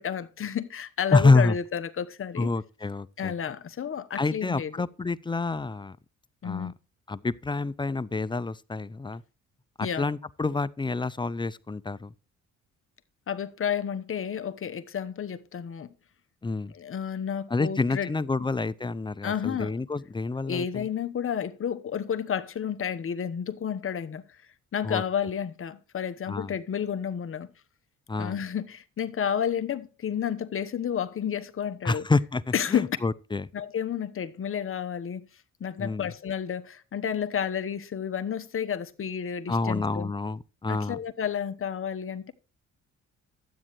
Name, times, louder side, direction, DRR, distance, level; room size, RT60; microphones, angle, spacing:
voice 1, 0.0-2.5 3.2-4.7 6.4-6.7 9.8-10.1 13.3-15.9 16.7-18.1 19.2-19.9 20.4-24.4 24.7-27.5 28.2-32.1 32.5-33.0 33.5-35.3 35.6-40.1 40.7-42.3, left 8 dB, 45° left, 1.0 m, -31 dB
voice 2, 1.1-1.6 2.4-3.3 4.2-6.0 6.4-6.7 7.1-9.2 9.8-12.1 16.4-16.7 17.5-20.9 24.8-25.0 26.3-26.5 28.1-28.4 31.8-32.4 32.7-33.5 35.8-36.1 39.5-41.0, left 3 dB, 15° left, 0.5 m, -27 dB
12.5 x 8.7 x 3.1 m
cardioid pair, 90°, 30 cm